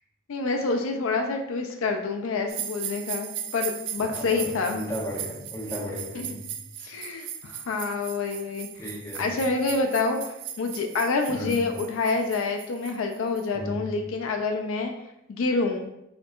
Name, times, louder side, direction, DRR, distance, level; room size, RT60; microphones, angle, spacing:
voice 1, 0.3-4.8 6.1-6.3 6.8-14.9 15.3-15.9, left 3 dB, 70° left, 4 dB, 0.4 m, -27 dB
sound 1, 2.5-13.5, right 9 dB, 55° right, 0.3 m, -38 dB
voice 2, 4.1-6.4 8.8-9.3 11.3-11.6 13.5-13.7, equal, 15° left, -4 dB, 0.7 m, -35 dB
4.3 x 2.8 x 2.4 m, 0.85 s
head